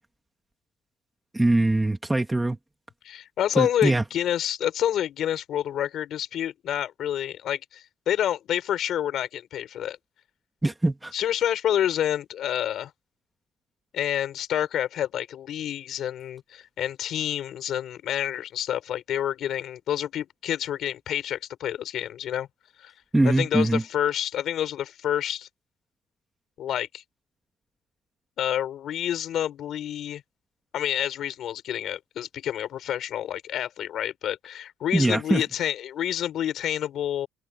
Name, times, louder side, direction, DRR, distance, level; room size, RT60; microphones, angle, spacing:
voice 1, 1.3-2.6 3.6-4.0 10.6-11.1 23.1-23.8 34.9-35.4, right 2 dB, 10° right, 1.9 m, -22 dB
voice 2, 3.0-10.0 11.1-12.9 13.9-22.5 22.8-22.9 23.2-25.5 26.6-27.0 28.4-30.2 30.7-37.3, left 11 dB, 55° left, 5.2 m, -28 dB
open air
cardioid pair, 165°, 0 cm